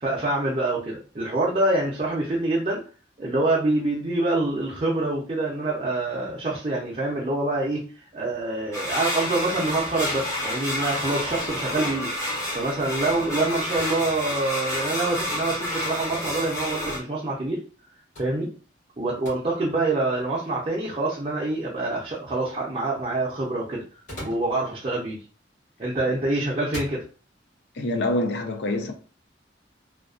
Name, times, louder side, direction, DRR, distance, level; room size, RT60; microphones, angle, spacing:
voice 1, 0.0-2.8 3.2-7.8 8.1-12.1 12.5-17.6 18.2-18.5 19.0-23.8 24.2-25.2 25.8-27.0, right 2 dB, 35° right, 0.5 m, -26 dB
sound 1, 8.7-17.0, left 1 dB, 15° left, 0.6 m, -29 dB
sound 2, 11.2-11.6 13.8-14.0 16.1-16.4 18.1-18.4 19.2-19.4 20.4-20.5 23.8-24.6 25.7-26.0 26.6-27.0, left 1 dB, 45° left, 1.2 m, -40 dB
voice 2, 27.8-28.9, left 1 dB, 65° left, 0.4 m, -25 dB
2.4 x 2.2 x 2.4 m
head